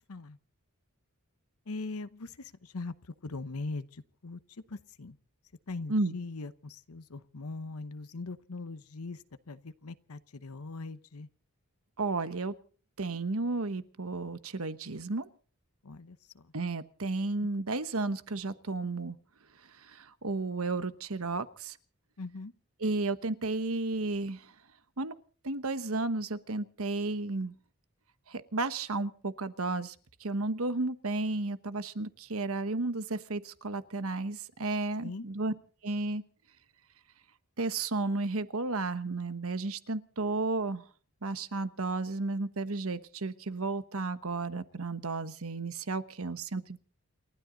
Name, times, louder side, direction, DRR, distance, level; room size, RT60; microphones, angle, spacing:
voice 1, 1.7-2.9 3.2-4.4 4.7-5.2 5.7-11.3 15.8-16.5 22.2-22.5 35.0-35.3, left 3 dB, 80° left, 12 dB, 0.9 m, -41 dB
voice 2, 12.0-12.5 13.0-15.3 16.5-19.2 19.7-21.8 22.8-24.5 25.0-25.1 25.4-27.5 28.3-29.9 30.2-35.5 35.8-36.2 37.6-40.8 41.2-46.8, right 3 dB, 70° right, 12 dB, 1.1 m, -33 dB
29.0 x 12.5 x 4.0 m, 0.42 s
head